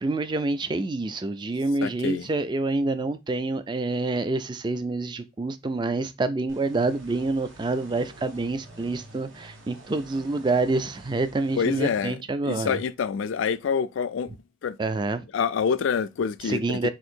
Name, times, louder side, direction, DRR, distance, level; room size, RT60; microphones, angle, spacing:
voice 1, 0.0-12.8 14.8-15.2 16.4-16.9, right 2 dB, 20° right, 0.3 m, -27 dB
voice 2, 1.8-2.3 11.6-12.2 12.4-14.4 14.6-14.8 15.3-16.9, left 6 dB, 75° left, 0.3 m, -26 dB
sound 1, 6.5-12.0, right 1 dB, 70° right, 1.0 m, -48 dB
3.7 x 2.6 x 4.3 m
head